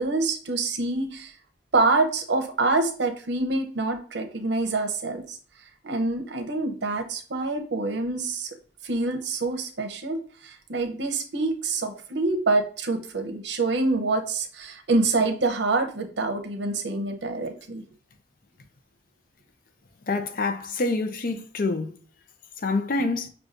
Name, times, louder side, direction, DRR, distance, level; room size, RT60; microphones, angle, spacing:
voice 1, 0.0-1.3 1.7-5.4 5.8-8.5 8.8-10.2 10.4-17.8, right 3 dB, 70° right, 0.7 m, -26 dB
voice 2, 20.1-21.9 22.6-23.3, left 3 dB, 50° left, 0.5 m, -26 dB
6.3 x 2.3 x 2.6 m
head